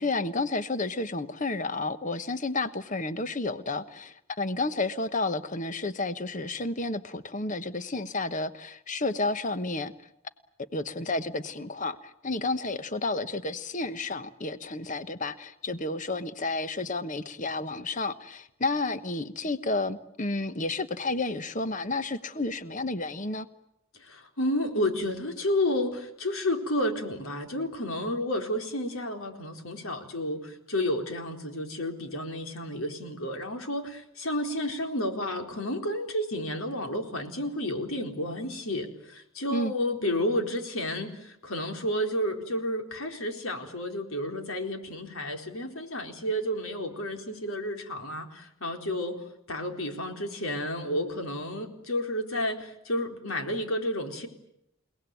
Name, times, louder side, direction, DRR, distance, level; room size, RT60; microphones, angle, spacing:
voice 1, 0.0-9.9 10.6-23.5 39.5-39.7, left 2 dB, 35° left, 11 dB, 1.2 m, -31 dB
voice 2, 24.0-54.3, left 1 dB, 75° left, 4 dB, 4.2 m, -31 dB
30.0 x 18.5 x 9.3 m, 0.81 s
head